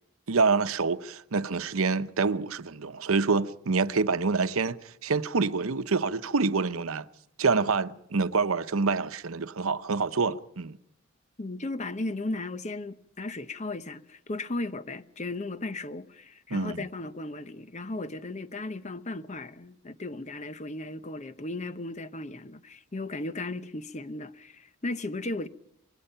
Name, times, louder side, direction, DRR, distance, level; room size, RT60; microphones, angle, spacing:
voice 1, 0.3-7.1 7.4-10.8 16.5-16.8, right 4 dB, 90° right, 0.8 m, -27 dB
voice 2, 11.4-25.5, left 2 dB, 35° left, 0.8 m, -36 dB
25.5 x 20.5 x 5.7 m
head